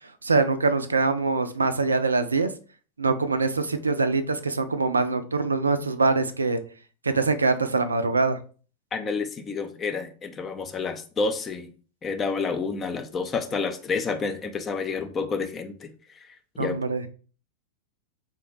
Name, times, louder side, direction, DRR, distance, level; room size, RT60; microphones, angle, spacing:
voice 1, 0.2-2.5 3.0-6.6 7.0-8.4 16.6-17.0, right 3 dB, 75° right, 0.3 m, -23 dB
voice 2, 8.9-11.7 12.0-15.9 16.3-16.8, left 4 dB, 20° left, 0.4 m, -29 dB
3.2 x 2.1 x 3.0 m
figure-of-eight pair, 90°, 0 cm